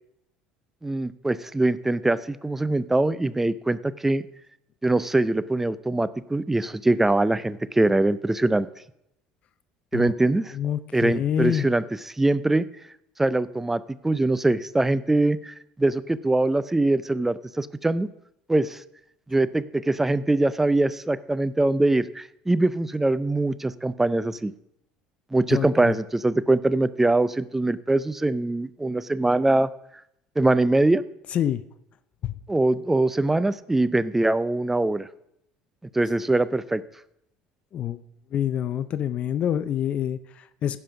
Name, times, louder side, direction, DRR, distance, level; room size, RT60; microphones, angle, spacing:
voice 1, 0.8-4.2 4.8-8.7 9.9-10.6 10.9-11.8 12.2-12.7 13.2-18.1 18.5-18.8 19.3-24.5 25.3-29.7 30.4-31.0 32.5-35.1 35.9-36.8, right 2 dB, 10° right, 16 dB, 0.5 m, -23 dB
voice 2, 10.5-11.7 25.5-25.9 31.3-31.6 32.2-32.4 37.7-38.0 38.3-40.8, left 10 dB, 50° left, 14 dB, 0.5 m, -26 dB
15.0 x 5.5 x 5.8 m, 0.79 s
supercardioid pair, 95°, 3 cm